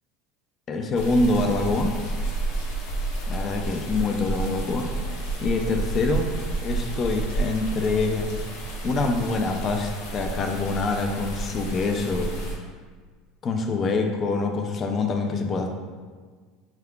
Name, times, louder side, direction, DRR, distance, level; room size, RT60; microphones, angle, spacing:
voice 1, 0.7-2.0 3.3-4.9 5.4-6.3 6.6-8.3 8.8-12.3 13.4-15.7, left 3 dB, 30° left, 4 dB, 0.4 m, -25 dB
sound 1, 0.9-12.5, right 2 dB, 75° left, 0.8 m, -30 dB
4.5 x 2.3 x 3.6 m, 1.5 s
supercardioid pair, 145°, 0 cm